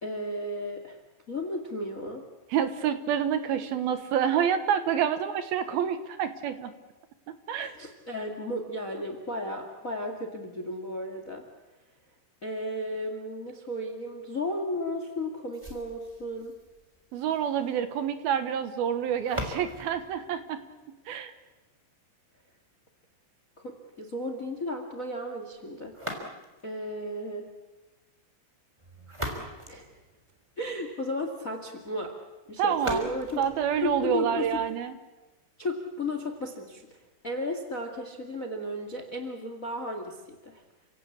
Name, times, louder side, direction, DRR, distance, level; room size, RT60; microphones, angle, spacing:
voice 1, 0.0-1.0 1.3-2.2 7.6-11.4 12.4-16.5 23.6-25.9 26.6-27.5 29.7-29.9 30.6-32.1 32.5-33.4 33.8-34.6 35.6-36.8 37.2-40.6, left 1 dB, 30° left, 6 dB, 1.5 m, -34 dB
voice 2, 2.5-6.7 7.3-7.7 17.1-20.6 21.1-21.3 32.6-33.0 33.4-34.9, right 8 dB, 70° right, 10 dB, 2.9 m, -28 dB
sound 1, 15.5-21.5 25.9-26.8 28.8-30.7 32.7-34.7, equal, 10° right, 3.0 m, -41 dB
29.5 x 17.0 x 8.6 m, 1.1 s
omnidirectional pair, 4.8 m